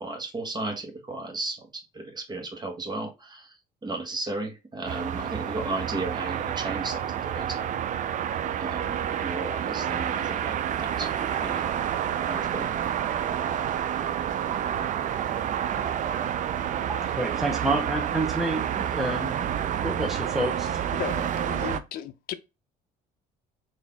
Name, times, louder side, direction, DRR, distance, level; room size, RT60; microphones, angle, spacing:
voice 1, 0.0-3.6 3.8-7.7 8.6-11.7 12.2-12.7, right 2 dB, 25° right, 1.2 m, -35 dB
sound 1, 4.9-21.8, right 9 dB, 50° right, 0.4 m, -29 dB
voice 2, 16.5-19.5 19.8-20.8, right 1 dB, ahead, 0.7 m, -29 dB
voice 3, 21.0-22.3, left 10 dB, 60° left, 0.5 m, -35 dB
4.0 x 2.6 x 3.4 m
cardioid pair, 110°, 17 cm